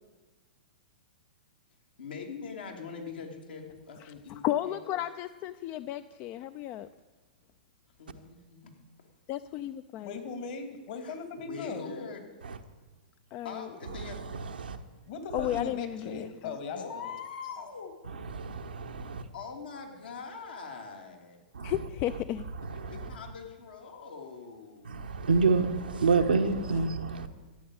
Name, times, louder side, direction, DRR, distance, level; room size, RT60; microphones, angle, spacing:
voice 1, 2.0-4.8 8.0-8.7 11.0-11.2 11.5-12.2 13.4-14.2 16.8-17.9 19.3-21.4 22.9-25.0, left 5 dB, 80° left, 2.9 m, -42 dB
voice 2, 4.0-6.9 9.3-10.2 13.3-13.7 15.3-16.6 21.6-22.5, left 13 dB, 35° left, 0.4 m, -34 dB
voice 3, 10.0-11.9 15.1-17.2, left 4 dB, 60° left, 2.5 m, -38 dB
voice 4, 13.8-14.8 15.4-15.6 18.0-19.3 21.5-22.2 22.6-23.1 24.8-27.3, right 4 dB, 90° right, 1.2 m, -29 dB
13.5 x 8.5 x 8.7 m
hypercardioid pair, 125°, 5 cm